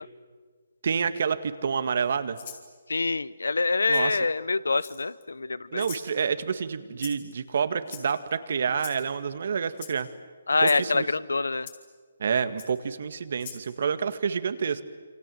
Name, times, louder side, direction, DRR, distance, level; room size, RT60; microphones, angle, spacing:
voice 1, 0.8-2.4 3.9-4.2 5.7-10.1 10.6-11.1 12.2-14.8, right 6 dB, 60° right, 11 dB, 1.9 m, -28 dB
Rattle (instrument), 2.3-2.6 3.9-4.0 4.8-5.2 5.8-6.1 7.0-7.3 7.9-8.3 8.8-9.0 9.7-9.9 10.6-10.8 11.7-11.8 12.6-12.7 13.4-13.6, left 8 dB, 45° left, 4.6 m, -41 dB
voice 2, 2.9-5.9 10.5-11.7, left 3 dB, 85° left, 19 dB, 0.9 m, -25 dB
28.5 x 26.0 x 7.9 m, 1.5 s
hypercardioid pair, 150°, 0 cm